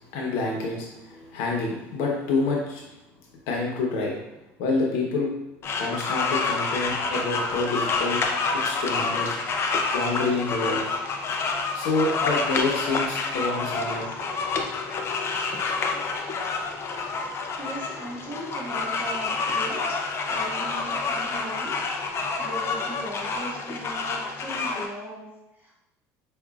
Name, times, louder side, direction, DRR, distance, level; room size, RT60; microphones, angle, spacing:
voice 1, 0.1-2.8 3.5-4.2 4.6-5.3 5.8-8.2 8.6-9.4 9.9-10.8 11.7-14.0, left 3 dB, 80° left, -1 dB, 0.9 m, -27 dB
sound 1, 5.6-24.9, left 4 dB, 40° left, 0.5 m, -28 dB
voice 2, 17.6-20.0 20.3-21.8 22.4-25.3 25.5-25.7, right 1 dB, 25° right, -6 dB, 1.4 m, -38 dB
4.9 x 2.5 x 2.4 m, 0.94 s
supercardioid pair, 105°, 6 cm